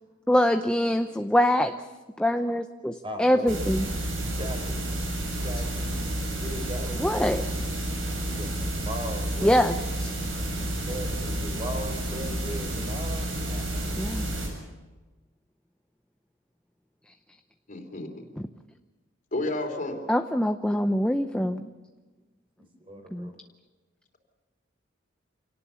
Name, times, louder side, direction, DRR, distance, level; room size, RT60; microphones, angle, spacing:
voice 1, 0.3-1.7 2.2-3.9 7.0-7.4 9.4-9.7 14.0-14.3 20.1-21.6 23.1-23.3, equal, 5° left, 7 dB, 0.6 m, -24 dB
voice 2, 3.0-3.7 4.2-4.8 5.3-7.3 8.3-9.6 10.6-13.9 21.3-21.5 22.9-23.4, equal, 30° right, 5 dB, 4.1 m, -38 dB
sound 1, 3.5-14.5, right 1 dB, 90° right, 7.2 m, -30 dB
voice 3, 17.7-18.1 19.3-20.0, left 2 dB, 45° left, 5 dB, 3.3 m, -31 dB
26.5 x 18.5 x 7.0 m, 1.2 s
head